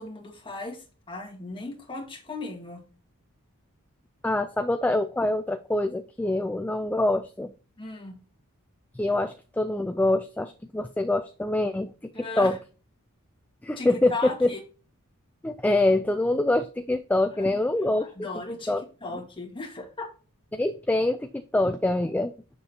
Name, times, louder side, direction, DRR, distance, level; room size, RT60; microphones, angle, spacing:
voice 1, 0.0-2.8 7.8-8.2 12.1-12.6 13.8-14.6 17.4-20.1, left 3 dB, 25° left, 1 dB, 1.7 m, -37 dB
voice 2, 4.2-7.5 9.0-12.1 12.4-12.6 13.6-14.5 15.4-18.1 18.7-18.8 20.5-22.3, left 2 dB, 5° left, 8 dB, 0.3 m, -25 dB
6.9 x 6.7 x 2.8 m, 0.36 s
head